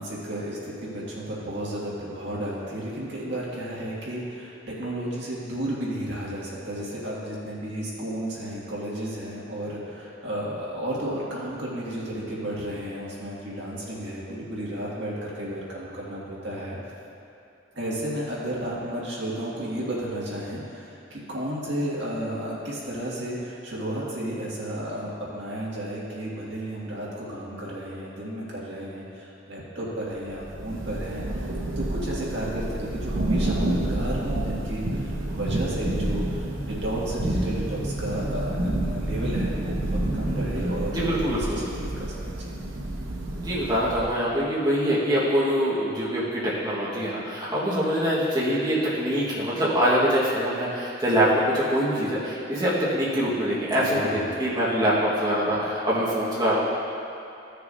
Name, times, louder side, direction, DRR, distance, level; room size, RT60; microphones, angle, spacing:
voice 1, 0.0-16.9 17.7-31.2 31.8-42.5 53.8-54.4, right 1 dB, 60° right, -7 dB, 2.0 m, -33 dB
Thunder / Rain, 30.2-44.3, right 1 dB, 80° right, 0.9 m, -29 dB
sound 1, 34.2-40.4, right 1 dB, 20° left, 0.8 m, -39 dB
voice 2, 40.9-41.6 43.4-56.6, equal, 20° right, -9 dB, 1.5 m, -24 dB
15.0 x 6.6 x 2.7 m, 2.7 s
head